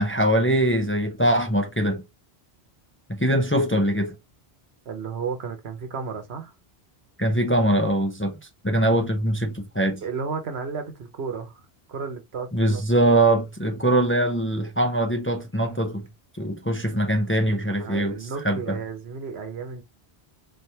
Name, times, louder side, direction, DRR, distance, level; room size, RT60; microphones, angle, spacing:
voice 1, 0.0-2.0 3.1-4.1 7.2-8.4 8.6-10.0 12.5-16.1 16.4-18.2 18.4-18.8, right 1 dB, 15° left, 0.5 m, -22 dB
voice 2, 4.9-6.5 10.0-11.6 11.9-12.8 17.8-19.8, right 5 dB, 80° right, 1.2 m, -33 dB
4.2 x 3.3 x 2.8 m
omnidirectional pair, 1.0 m